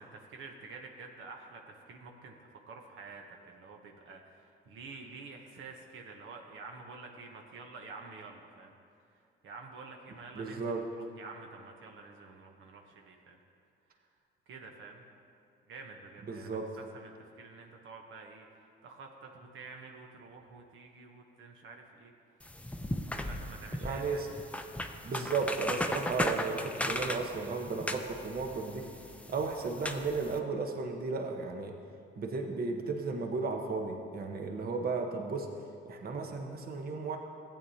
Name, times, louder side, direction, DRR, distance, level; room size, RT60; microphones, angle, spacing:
voice 1, 0.0-8.7 9.1-13.4 14.0-14.1 14.5-15.0 15.7-22.1 23.1-24.2, right 4 dB, 80° right, 2 dB, 0.9 m, -49 dB
voice 2, 10.3-10.8 16.3-16.6 23.8-24.3 25.0-28.9 29.3-31.7 32.2-35.5 35.8-37.2, right 4 dB, 50° right, 3 dB, 1.0 m, -34 dB
sound 1, 22.4-30.4, left 1 dB, 5° left, 0.5 m, -37 dB
14.5 x 8.8 x 2.8 m, 2.4 s
cardioid pair, 90°, 20 cm